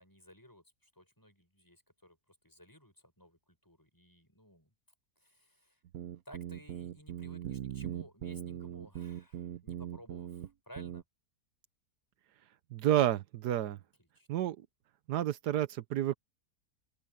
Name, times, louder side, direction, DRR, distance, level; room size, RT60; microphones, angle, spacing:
voice 1, 0.0-4.7 5.2-5.8 6.3-11.0 13.7-14.3, equal, 10° left, 7.0 m, -57 dB
sound 1, 5.9-10.5 10.8-11.0, right 11 dB, 65° right, 1.2 m, -40 dB
voice 2, 12.7-13.8 14.3-14.6 15.1-16.1, right 12 dB, 85° right, 1.4 m, -30 dB
open air
omnidirectional pair, 1.7 m